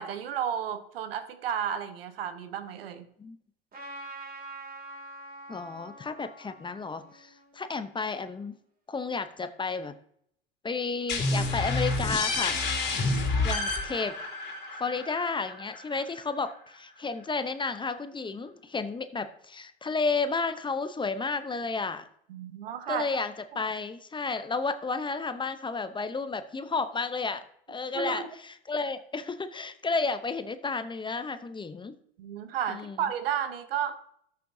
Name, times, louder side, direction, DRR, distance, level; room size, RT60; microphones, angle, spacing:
voice 1, 0.0-3.1 13.0-13.6 22.3-23.1 27.9-28.3 32.2-34.0, right 9 dB, 80° right, 11 dB, 1.0 m, -33 dB
Trumpet, 3.7-8.4, right 1 dB, 30° right, 2.7 m, -46 dB
voice 2, 5.5-8.6 8.9-9.9 10.6-12.6 13.4-14.2 14.8-22.1 22.9-32.0 32.7-33.0, left 4 dB, 15° left, 10 dB, 0.7 m, -32 dB
sound 1, 11.1-16.5, left 3 dB, 35° left, 2.9 m, -29 dB
13.0 x 6.8 x 2.7 m, 0.68 s
hypercardioid pair, 85°, 29 cm